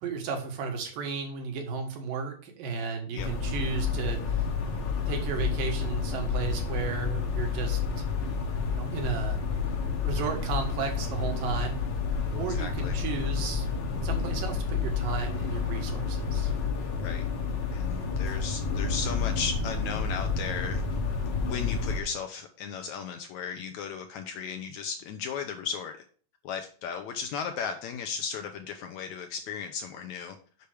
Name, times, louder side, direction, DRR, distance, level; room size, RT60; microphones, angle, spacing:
voice 1, 0.0-4.4 5.1-8.1 8.7-9.4 10.0-11.8 12.3-13.7 14.0-16.5, right 5 dB, 80° right, 3 dB, 3.2 m, -34 dB
sound 1, 3.2-22.0, left 5 dB, 60° left, 1.2 m, -30 dB
voice 2, 12.5-13.0 17.0-17.3 17.7-20.8 21.2-26.0 26.4-30.4, left 6 dB, 75° left, 6 dB, 1.8 m, -36 dB
6.9 x 5.7 x 4.9 m, 0.43 s
omnidirectional pair, 3.9 m